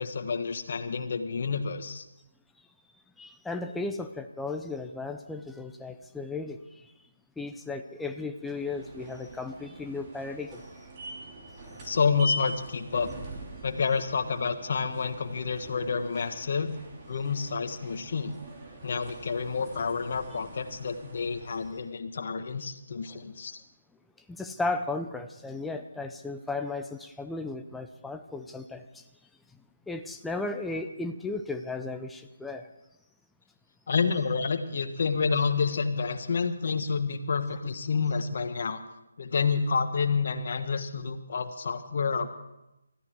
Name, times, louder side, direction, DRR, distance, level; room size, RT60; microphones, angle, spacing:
voice 1, 0.0-2.0 11.8-13.1 13.6-16.8 17.1-18.3 18.8-23.6 33.9-38.8 39.2-42.4, left 5 dB, 55° left, 7 dB, 1.5 m, -29 dB
voice 2, 3.2-6.9 7.4-10.6 11.8-11.9 23.1-23.3 24.3-29.0 29.9-32.7, left 3 dB, 5° left, 5 dB, 0.6 m, -35 dB
sound 1, 8.4-21.9, left 1 dB, 25° right, 3.1 m, -42 dB
20.5 x 13.5 x 4.7 m, 0.92 s
hypercardioid pair, 160°, 0 cm